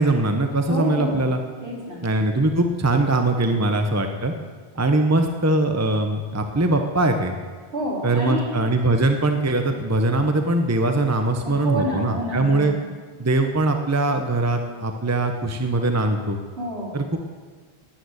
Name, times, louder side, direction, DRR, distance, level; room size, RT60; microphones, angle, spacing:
voice 1, 0.0-1.4 2.0-4.3 4.8-7.3 8.0-12.7 13.2-16.4 16.9-17.2, right 2 dB, 15° right, 5 dB, 0.9 m, -21 dB
voice 2, 0.7-1.2 1.6-2.0 7.7-8.5 11.4-12.8 16.6-17.0, equal, 65° right, -4 dB, 4.4 m, -28 dB
13.0 x 9.4 x 9.7 m, 1.5 s
omnidirectional pair, 1.1 m